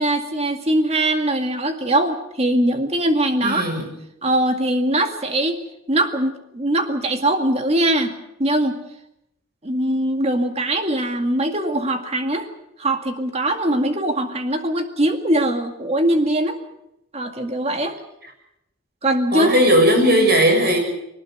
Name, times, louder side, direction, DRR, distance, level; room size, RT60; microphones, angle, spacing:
voice 1, 0.0-3.7 4.2-5.6 5.9-8.8 9.6-12.5 12.8-16.6 17.1-18.0 19.0-19.5, right 1 dB, 30° right, 6 dB, 2.1 m, -21 dB
voice 2, 3.4-3.8 19.3-20.8, equal, 50° right, 4 dB, 6.9 m, -16 dB
21.0 x 19.0 x 7.8 m, 0.83 s
head